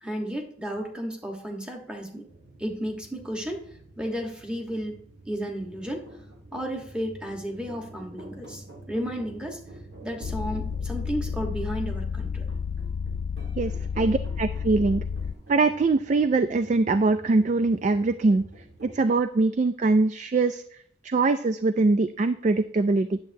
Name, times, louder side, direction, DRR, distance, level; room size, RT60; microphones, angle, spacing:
voice 1, 0.0-2.2 2.6-3.6 4.0-5.0 5.3-6.1 6.5-9.6 10.0-12.5 13.7-14.1, equal, 5° right, 1 dB, 1.2 m, -33 dB
sound 1, 2.3-19.0, right 2 dB, 60° right, 1.9 m, -48 dB
sound 2, 10.2-15.3, left 6 dB, 80° left, 0.3 m, -31 dB
voice 2, 13.6-15.0 15.5-18.4 18.8-20.6 21.0-23.2, right 3 dB, 40° right, 11 dB, 0.3 m, -23 dB
10.5 x 7.5 x 2.7 m, 0.64 s
head